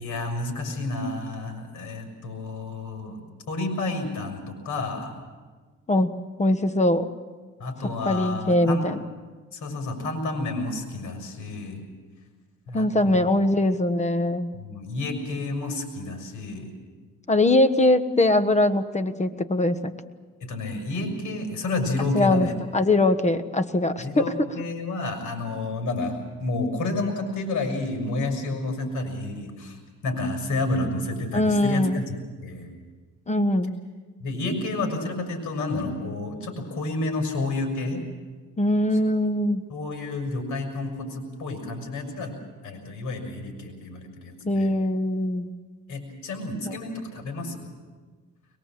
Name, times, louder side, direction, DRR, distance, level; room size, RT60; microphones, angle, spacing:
voice 1, 0.0-3.2 3.5-5.2 7.6-8.8 9.5-11.8 12.7-13.3 14.5-16.7 20.4-22.5 24.0-29.8 30.0-32.2 32.4-32.7 34.2-38.0 39.7-42.3 42.6-44.8 45.9-47.7, left 2 dB, 75° left, 4 dB, 6.4 m, -30 dB
voice 2, 6.4-7.1 8.0-9.0 12.7-14.5 17.3-19.9 22.1-24.3 31.3-32.1 33.3-33.7 38.6-39.6 44.4-45.5 46.6-46.7, left 1 dB, 25° left, 11 dB, 1.4 m, -22 dB
22.5 x 21.5 x 7.7 m, 1.4 s
cardioid pair, 90°, 30 cm